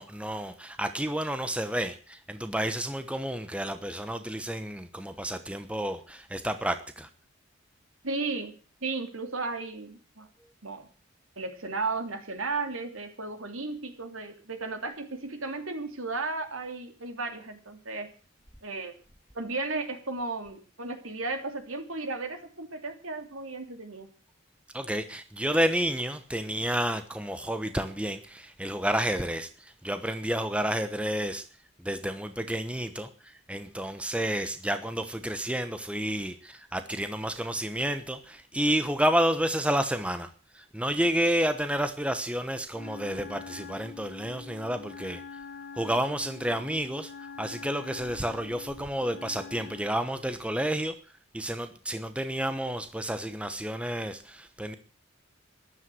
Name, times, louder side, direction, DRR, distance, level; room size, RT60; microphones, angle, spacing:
voice 1, 0.0-7.1 24.7-31.4 31.8-45.2 45.7-51.0 51.3-54.7, right 1 dB, 5° right, 9 dB, 1.0 m, -30 dB
voice 2, 8.0-8.5 8.8-10.3 10.6-10.9 11.4-18.1 18.6-18.9 19.3-24.1, right 3 dB, 80° right, 6 dB, 3.2 m, -34 dB
Wind instrument woodwind instrument, 42.7-50.0, left 5 dB, 45° left, 2.1 m, -45 dB
14.0 x 11.0 x 7.7 m, 0.38 s
head